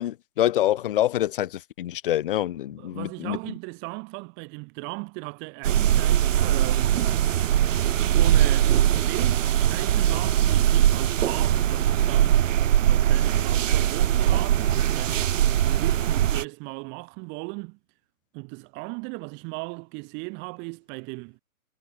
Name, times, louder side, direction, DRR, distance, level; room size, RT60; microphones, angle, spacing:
voice 1, 0.0-3.4, left 12 dB, 35° left, 1.0 m, -26 dB
voice 2, 2.8-7.0 7.6-12.4 12.9-15.2 15.6-17.8 18.3-21.4, right 33 dB, 25° right, 6.2 m, -37 dB
sound 1, 5.6-16.4, right 11 dB, 60° right, 0.7 m, -21 dB
hypercardioid pair, 150°, 44 cm